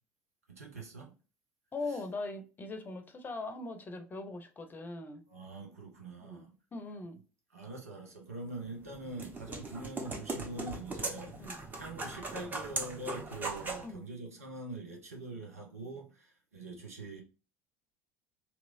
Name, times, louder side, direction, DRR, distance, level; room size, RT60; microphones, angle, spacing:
voice 1, 0.5-1.2 1.9-2.0 5.3-6.5 7.5-11.5 11.7-17.2, right 2 dB, 80° right, 0.9 m, -44 dB
voice 2, 1.7-5.2 6.3-6.5 6.7-7.2 11.4-11.6 13.8-14.0, left 3 dB, 25° left, 0.7 m, -40 dB
sound 1, 8.7-13.9, right 3 dB, 20° right, 1.0 m, -39 dB
3.0 x 3.0 x 2.6 m
figure-of-eight pair, 65°, 8 cm